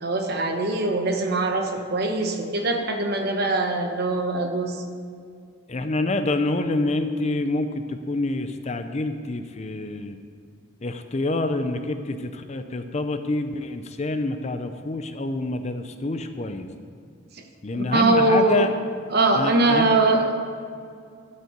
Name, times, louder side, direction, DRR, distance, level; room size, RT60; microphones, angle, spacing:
voice 1, 0.0-4.8 17.7-18.7 19.1-20.3, right 2 dB, 45° right, 4 dB, 1.1 m, -22 dB
voice 2, 5.7-10.2 10.8-16.7 17.6-18.7 19.4-19.9, left 2 dB, 30° left, 8 dB, 0.5 m, -27 dB
12.5 x 5.6 x 8.0 m, 2.3 s
head